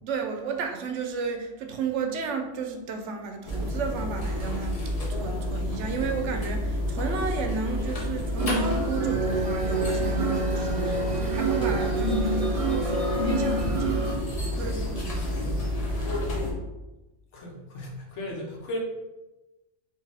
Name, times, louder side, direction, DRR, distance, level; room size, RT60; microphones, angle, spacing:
voice 1, 0.0-15.7, right 5 dB, 75° right, 5 dB, 0.9 m, -33 dB
sound 1, 3.4-16.5, left 1 dB, 35° left, 0.7 m, -30 dB
sound 2, 8.4-14.2, right 2 dB, 40° right, 0.5 m, -27 dB
voice 2, 17.3-18.8, left 1 dB, 70° left, -1 dB, 1.2 m, -36 dB
4.4 x 2.7 x 3.4 m, 1.0 s
omnidirectional pair, 1.3 m